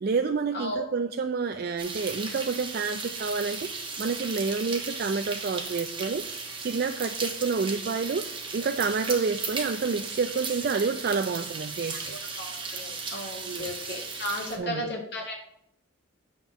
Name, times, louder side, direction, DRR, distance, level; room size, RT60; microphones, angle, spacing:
voice 1, 0.0-3.7 4.0-6.2 6.6-8.3 8.5-12.1 13.4-13.7 14.6-14.9, right 4 dB, 50° right, 7 dB, 0.4 m, -29 dB
voice 2, 0.5-0.9 9.0-9.2 11.9-15.3, left 1 dB, 55° left, 0 dB, 2.1 m, -35 dB
sound 1, 1.8-14.6, right 4 dB, 25° right, 1.2 m, -36 dB
9.1 x 4.4 x 6.6 m, 0.75 s
head